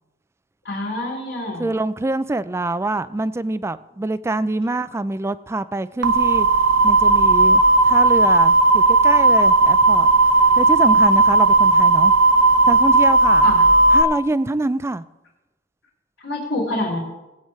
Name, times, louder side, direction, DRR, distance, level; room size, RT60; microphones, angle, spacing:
voice 1, 0.6-1.6 13.4-13.6 16.2-17.0, left 1 dB, 80° left, -4 dB, 3.5 m, -26 dB
voice 2, 1.6-6.5 6.8-10.1 10.5-12.1 12.7-13.5 13.9-15.0, right 2 dB, 15° right, 15 dB, 0.3 m, -25 dB
sound 1, 6.0-14.0, right 3 dB, 65° right, 0.6 m, -15 dB
19.5 x 8.8 x 3.2 m, 1.0 s
head